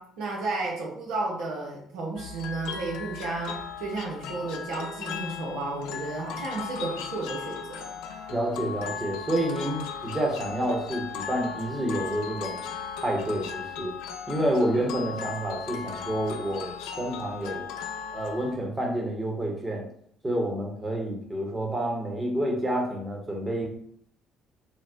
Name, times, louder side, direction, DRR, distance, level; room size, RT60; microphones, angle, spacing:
voice 1, 0.0-7.9, right 3 dB, 75° right, -2 dB, 0.6 m, -33 dB
sound 1, 2.2-18.5, left 6 dB, 75° left, 0.3 m, -37 dB
voice 2, 8.3-12.6 13.0-13.9 14.3-17.7 18.1-19.8 20.2-23.7, right 1 dB, 25° right, -1 dB, 1.1 m, -29 dB
4.0 x 2.1 x 2.6 m, 0.66 s
hypercardioid pair, 55°, 0 cm